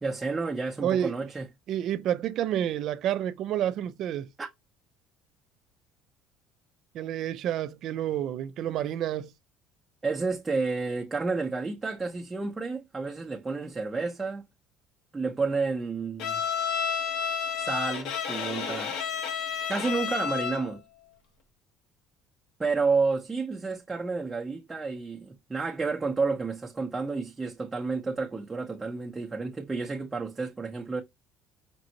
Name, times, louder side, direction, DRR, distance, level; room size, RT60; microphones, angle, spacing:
voice 1, 0.0-1.5 4.4-4.5 10.0-14.5 15.1-16.4 17.6-18.9 19.7-20.8 22.6-31.0, right 4 dB, 15° right, 0.8 m, -30 dB
voice 2, 0.8-1.1 1.7-4.3 6.9-9.3, right 11 dB, 60° right, 0.6 m, -29 dB
Bowed string instrument, 16.2-20.8, left 7 dB, 75° left, 1.1 m, -31 dB
5.2 x 2.6 x 2.9 m
cardioid pair, 105°, 0 cm